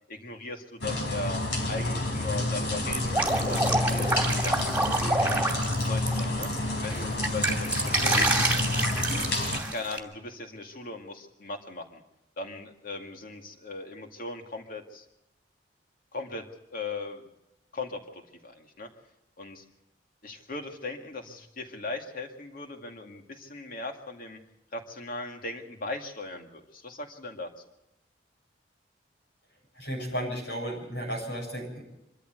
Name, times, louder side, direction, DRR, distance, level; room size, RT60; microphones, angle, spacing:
voice 1, 0.1-1.4 1.7-5.4 5.8-6.5 6.8-8.6 9.7-12.0 12.4-15.0 16.1-16.5 16.7-17.3 17.7-18.9 19.4-19.6 20.2-24.4 24.7-27.5, left 3 dB, 50° left, 4 dB, 2.2 m, -38 dB
sound 1, 0.8-9.6, left 2 dB, 70° left, 4.5 m, -29 dB
Drip, 2.9-6.4 6.8-10.0, right 2 dB, 10° right, 2.6 m, -27 dB
voice 2, 29.7-31.8, equal, 90° left, -1 dB, 7.3 m, -34 dB
25.5 x 13.5 x 8.0 m, 0.90 s
head